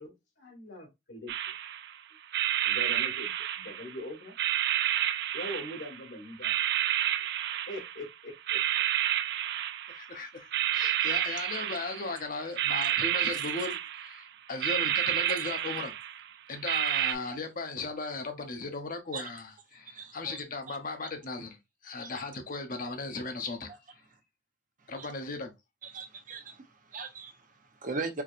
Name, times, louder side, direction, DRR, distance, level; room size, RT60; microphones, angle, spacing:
voice 1, 0.0-1.3 2.6-4.3 5.3-6.6 7.7-8.6, left 1 dB, 80° left, 1.7 m, -42 dB
sound 1, 1.3-1.9 2.3-4.0 4.4-6.1 6.4-8.1 8.5-10.1 10.5-12.1 12.6-14.2 14.6-16.3 16.6-17.1, right 11 dB, 60° right, 0.4 m, -30 dB
voice 2, 9.9-10.5 10.7-15.9 16.5-21.6 21.8-23.7 24.9-25.5, left 3 dB, 50° left, 0.9 m, -37 dB
voice 3, 19.7-20.4 20.7-20.8 22.0-22.1 25.0-25.1 25.8-28.2, right 4 dB, 45° right, 0.8 m, -40 dB
4.6 x 2.9 x 2.5 m
head